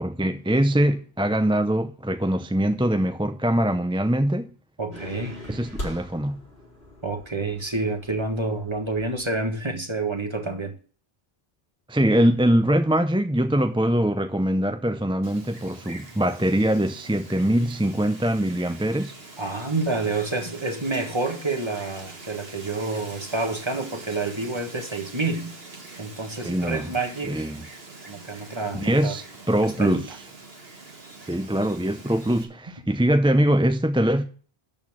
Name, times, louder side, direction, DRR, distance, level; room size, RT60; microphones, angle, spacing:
voice 1, 0.0-4.5 5.5-6.4 11.9-19.1 26.4-26.9 27.2-27.6 28.7-30.0 31.2-34.2, right 1 dB, 5° right, 0.5 m, -23 dB
voice 2, 4.8-5.4 7.0-10.7 19.4-25.5 26.0-27.5 28.1-29.1 29.6-30.0, right 3 dB, 25° right, 1.8 m, -28 dB
sound 1, 4.9-9.7, equal, 80° left, 5.2 m, -41 dB
Wind, 15.2-32.4, right 3 dB, 70° right, 1.9 m, -44 dB
12.5 x 4.4 x 7.2 m
omnidirectional pair, 1.1 m